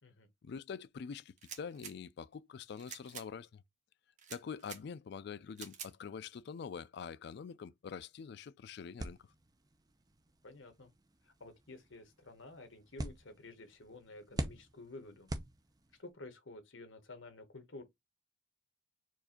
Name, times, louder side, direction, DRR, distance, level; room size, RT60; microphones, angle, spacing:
voice 1, 0.4-3.6 4.3-9.2, left 6 dB, 60° left, 0.3 m, -45 dB
sound 1, 1.4-1.9 2.8-3.3 4.2-4.8 5.6-5.9, right 7 dB, 40° right, 0.9 m, -48 dB
sound 2, 9.0-16.1, right 1 dB, 20° right, 0.5 m, -46 dB
voice 2, 10.4-10.9 11.2-15.3 16.0-17.8, left 2 dB, 75° left, 1.2 m, -51 dB
4.6 x 2.5 x 4.2 m
head